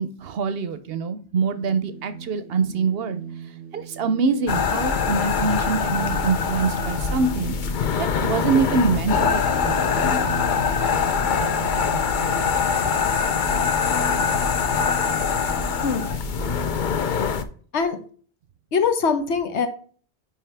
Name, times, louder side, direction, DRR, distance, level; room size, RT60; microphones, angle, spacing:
voice 1, 0.0-3.2 3.7-7.6 8.0-9.9, right 4 dB, 65° right, 12 dB, 0.8 m, -24 dB
sound 1, 1.5-16.8, right 4 dB, 85° right, 1.0 m, -37 dB
sound 2, 4.5-17.4, left 6 dB, 50° left, 0.7 m, -23 dB
voice 2, 18.7-19.7, left 5 dB, 75° left, 8 dB, 1.2 m, -22 dB
5.6 x 5.0 x 3.4 m, 0.43 s
omnidirectional pair, 1.2 m